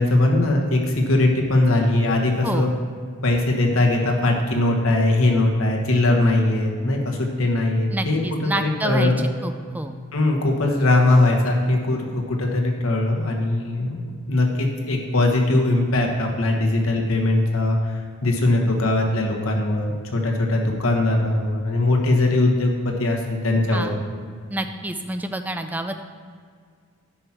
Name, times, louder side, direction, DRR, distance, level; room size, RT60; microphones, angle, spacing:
voice 1, 0.0-2.7 3.2-9.2 10.1-23.9, left 2 dB, 80° left, 1 dB, 1.3 m, -20 dB
voice 2, 7.9-9.1 9.4-9.9 23.7-24.0 24.5-26.0, right 1 dB, 10° right, 7 dB, 0.4 m, -28 dB
10.0 x 5.9 x 4.3 m, 2.1 s
head